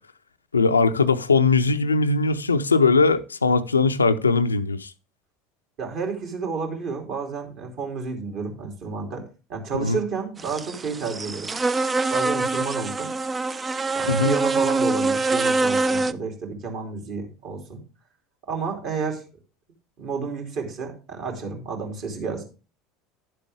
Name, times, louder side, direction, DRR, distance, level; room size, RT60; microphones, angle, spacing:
voice 1, 0.5-4.9 9.7-10.0 14.1-14.3, left 4 dB, 80° left, 0.5 m, -20 dB
voice 2, 5.8-9.2 9.5-11.5 12.1-13.1 13.9-17.8 18.5-19.2 20.0-22.4, right 5 dB, 50° right, 3.1 m, -31 dB
sound 1, 10.4-16.1, right 3 dB, 20° right, 0.5 m, -24 dB
11.0 x 7.7 x 3.5 m
figure-of-eight pair, 70°, 0 cm